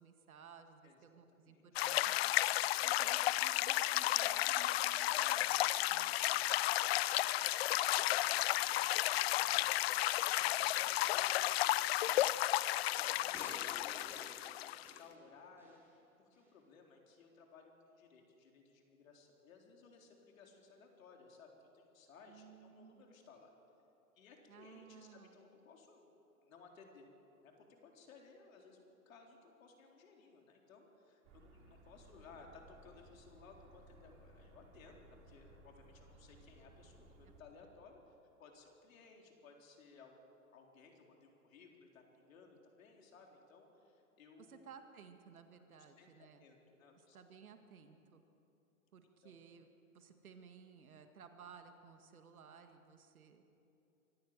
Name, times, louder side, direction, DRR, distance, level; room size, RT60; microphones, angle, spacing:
voice 1, 0.0-2.3 2.8-6.1 22.3-23.1 24.5-25.4 44.5-46.4 46.9-48.2 48.9-49.7 49.9-53.4, right 6 dB, 75° right, 7 dB, 2.0 m, -58 dB
voice 2, 1.3-1.6 5.9-11.7 12.1-12.4 12.8-16.0 16.3-23.5 24.2-26.1 26.4-27.1 27.4-40.2 40.5-44.6 45.7-47.2 49.2-49.4, left 4 dB, 65° left, 1 dB, 4.1 m, -61 dB
sound 1, 1.8-15.0, left 16 dB, 45° left, 0.5 m, -33 dB
sound 2, 13.3-15.8 16.3-16.4, equal, 5° right, 5.5 m, -54 dB
sound 3, 31.2-37.4, right 2 dB, 40° right, 3.6 m, -61 dB
24.5 x 14.5 x 7.6 m, 2.8 s
hypercardioid pair, 115°, 43 cm